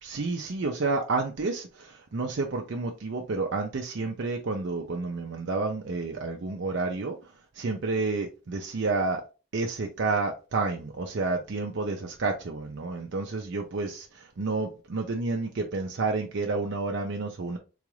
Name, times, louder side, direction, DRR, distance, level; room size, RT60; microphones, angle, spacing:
voice 1, 0.0-7.1 7.5-9.2 9.5-14.1 14.4-17.6, right 3 dB, 55° right, 0.5 m, -30 dB
3.9 x 2.4 x 3.1 m
head